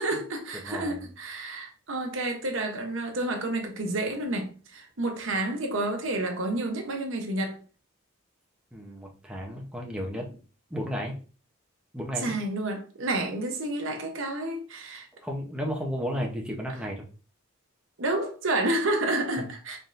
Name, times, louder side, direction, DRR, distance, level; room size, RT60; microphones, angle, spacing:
voice 1, 0.0-7.6 12.2-15.1 18.0-19.8, right 2 dB, 65° right, 0.8 m, -30 dB
voice 2, 0.6-1.0 8.7-10.4 10.7-11.1 11.9-12.4 15.2-17.1 19.4-19.5, equal, 5° right, 0.7 m, -33 dB
4.1 x 3.5 x 2.5 m
head